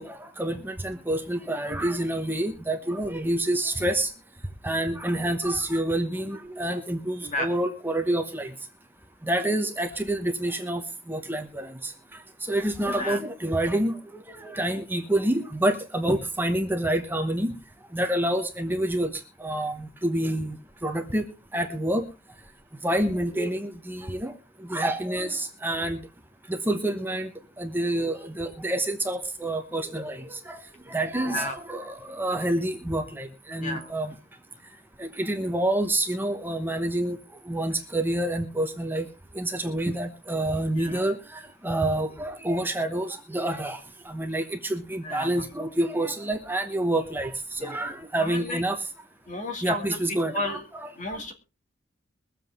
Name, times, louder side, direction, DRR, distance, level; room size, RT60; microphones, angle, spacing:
voice 1, 0.0-4.1 4.6-8.5 9.2-10.8 11.1-11.9 12.5-14.0 14.3-17.5 17.9-19.1 19.4-20.5 20.8-21.2 21.5-22.0 22.8-24.3 24.6-26.0 26.5-27.3 27.6-30.6 30.9-34.1 35.0-37.2 37.5-39.1 39.3-43.8 44.0-47.3 47.6-48.8 49.6-51.2, right 1 dB, 10° right, 6 dB, 1.0 m, -28 dB
voice 2, 7.2-7.5 13.0-13.2 31.2-31.6 33.6-33.9 40.8-41.0 45.0-45.4 47.6-47.8 48.2-48.6 49.3-49.8 50.3-50.6 51.0-51.3, left 1 dB, 40° left, 5 dB, 2.5 m, -32 dB
22.5 x 7.5 x 3.6 m, 0.32 s
head